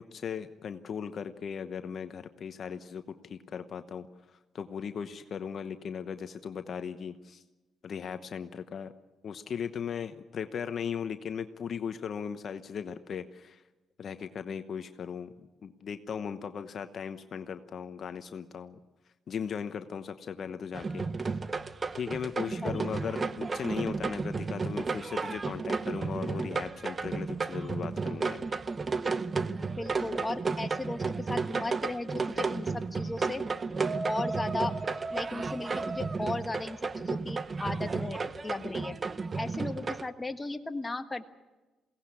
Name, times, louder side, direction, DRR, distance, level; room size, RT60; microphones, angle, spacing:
voice 1, 0.0-4.1 4.3-7.4 7.8-8.9 9.2-13.6 14.0-18.8 19.3-21.1 21.9-28.5, left 7 dB, 55° left, 9 dB, 1.0 m, -37 dB
sound 1, 20.7-40.1, right 4 dB, 35° right, 0.9 m, -33 dB
voice 2, 29.8-31.0 31.3-33.4 34.1-34.7 35.1-39.0 39.4-41.4, left 2 dB, 20° left, 6 dB, 1.5 m, -36 dB
22.5 x 17.5 x 8.5 m, 1.1 s
cardioid pair, 90°, 0 cm